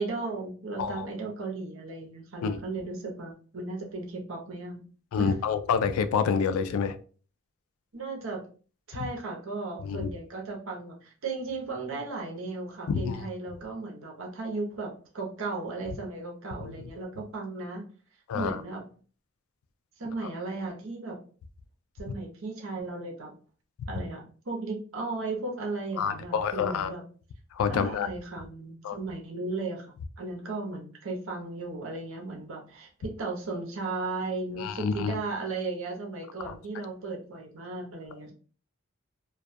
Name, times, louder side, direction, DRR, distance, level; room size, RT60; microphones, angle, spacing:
voice 1, 0.0-4.8 5.2-5.3 7.9-8.4 8.9-17.8 18.3-18.8 20.0-21.2 22.0-23.3 23.9-27.0 27.7-38.3, right 3 dB, 65° right, 0 dB, 0.7 m, -35 dB
voice 2, 5.1-7.0 9.8-10.1 12.9-13.2 16.6-16.7 18.3-18.6 20.2-20.3 26.0-26.9 27.5-28.1 28.8-29.0 34.6-35.2 36.5-36.6, left 6 dB, 75° left, 12 dB, 0.3 m, -28 dB
2.3 x 2.2 x 2.5 m, 0.40 s
head